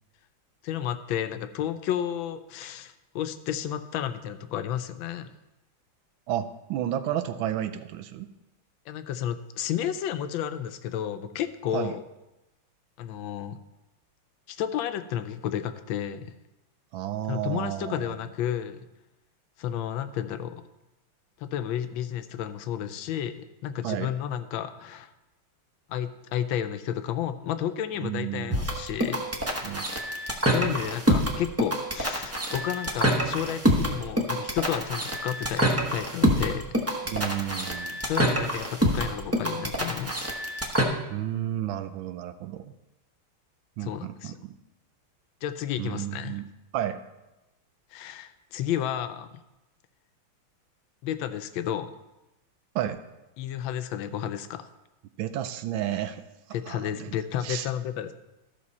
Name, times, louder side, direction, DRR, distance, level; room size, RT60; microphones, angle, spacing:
voice 1, 0.6-5.3 8.9-12.0 13.0-13.6 14.5-16.3 17.3-18.8 19.6-20.7 21.4-25.1 25.9-29.3 30.5-36.7 38.0-40.3 43.8-44.3 45.4-46.4 47.9-49.4 51.0-52.0 53.4-54.7 56.5-58.1, left 10 dB, 80° left, 10 dB, 1.3 m, -32 dB
voice 2, 6.3-8.3 11.7-11.9 16.9-18.2 23.8-24.1 28.0-28.7 29.6-29.8 37.1-38.0 41.1-42.6 43.8-44.5 45.8-46.5 46.7-47.0 52.7-53.0 55.2-56.2 56.7-57.2 57.4-57.7, right 11 dB, 85° right, 10 dB, 1.4 m, -32 dB
sound 1, 28.5-40.8, equal, 20° right, 0.3 m, -26 dB
13.5 x 6.1 x 4.1 m, 0.98 s
omnidirectional pair, 2.2 m